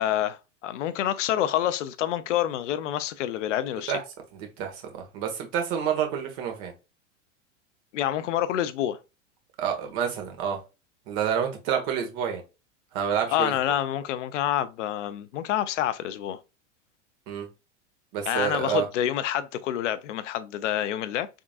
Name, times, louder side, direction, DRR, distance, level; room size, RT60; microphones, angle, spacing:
voice 1, 0.0-3.9 7.9-9.0 13.3-16.4 18.3-21.3, left 11 dB, 75° left, 0.6 m, -27 dB
voice 2, 4.4-6.7 9.6-10.6 11.1-12.4 12.9-13.5 17.3-17.5 18.1-18.8, right 8 dB, 55° right, 1.4 m, -28 dB
3.7 x 3.6 x 2.4 m
hypercardioid pair, 105°, 37 cm